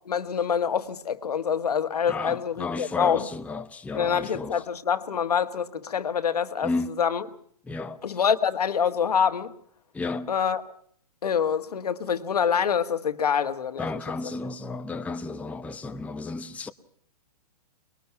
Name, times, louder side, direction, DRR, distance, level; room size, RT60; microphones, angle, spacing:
voice 1, 0.0-3.3 3.9-6.7 7.0-7.2 8.0-9.5 10.3-10.6 11.2-13.9, left 7 dB, 75° left, 1.6 m, -25 dB
voice 2, 2.1-4.6 6.6-6.9 7.7-8.0 9.9-10.3 13.8-16.7, left 3 dB, 5° left, 0.8 m, -33 dB
24.0 x 21.0 x 5.8 m
figure-of-eight pair, 115°, 20 cm